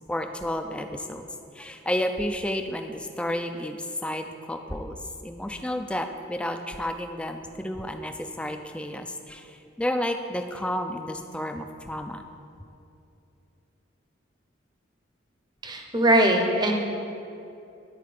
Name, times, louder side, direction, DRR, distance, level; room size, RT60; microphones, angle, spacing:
voice 1, 0.1-1.3 1.5-12.2, left 1 dB, 5° left, 6 dB, 0.3 m, -31 dB
voice 2, 15.6-16.7, right 1 dB, 20° right, 3 dB, 0.7 m, -21 dB
9.7 x 4.5 x 4.9 m, 2.7 s
head